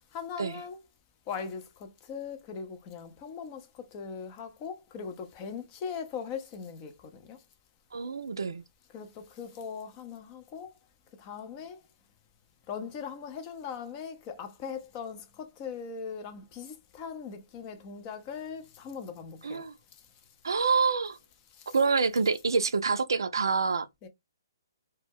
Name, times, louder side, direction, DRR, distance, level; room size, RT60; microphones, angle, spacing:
voice 1, 0.1-0.8 1.3-7.4 8.9-10.7 11.2-11.8 12.7-19.7 21.6-21.8 24.0-24.1, left 6 dB, 30° left, 0.6 m, -40 dB
voice 2, 7.9-8.6 19.4-19.7 20.4-21.2 21.7-23.9, right 4 dB, 80° right, 0.4 m, -27 dB
2.2 x 2.1 x 3.3 m
hypercardioid pair, 135°, 2 cm